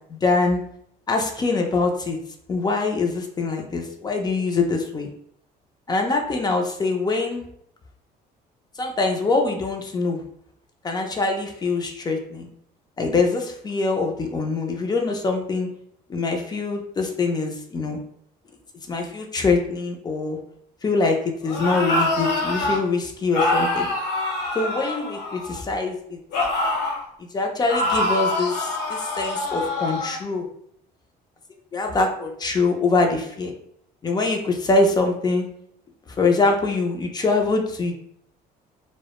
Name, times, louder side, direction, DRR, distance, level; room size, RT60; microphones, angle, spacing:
voice 1, 0.1-0.6 1.1-2.2 2.5-5.1 5.9-7.4 8.8-10.2 10.8-12.5 13.0-15.7 16.1-18.0 18.9-20.4 20.8-23.9 24.5-26.2 27.3-30.5 31.7-33.5 34.0-35.5 36.2-37.9, left 3 dB, 25° left, 3 dB, 0.4 m, -23 dB
sound 1, 21.4-22.8 23.3-25.6 26.3-27.0 27.7-30.2, left 2 dB, 75° left, 0.8 m, -25 dB
2.1 x 2.0 x 2.9 m, 0.68 s
cardioid pair, 110°, 17 cm